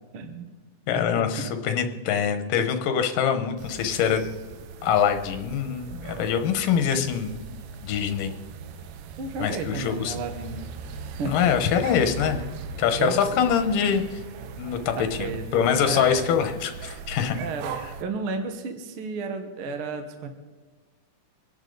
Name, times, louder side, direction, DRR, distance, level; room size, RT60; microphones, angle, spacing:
voice 1, 0.1-0.5 0.9-1.5 9.2-10.7 11.2-11.4 13.0-13.3 15.0-15.4 15.8-16.3 17.4-20.3, right 4 dB, 55° right, 6 dB, 1.7 m, -32 dB
voice 2, 0.9-4.2 4.8-7.4 7.8-8.3 9.4-10.2 11.3-12.4 12.8-14.2 14.6-17.4, left 8 dB, 85° left, 7 dB, 2.8 m, -24 dB
sound 1, 3.6-18.0, right 5 dB, 90° right, 2.5 m, -39 dB
25.5 x 11.0 x 4.0 m, 1.4 s
omnidirectional pair, 3.7 m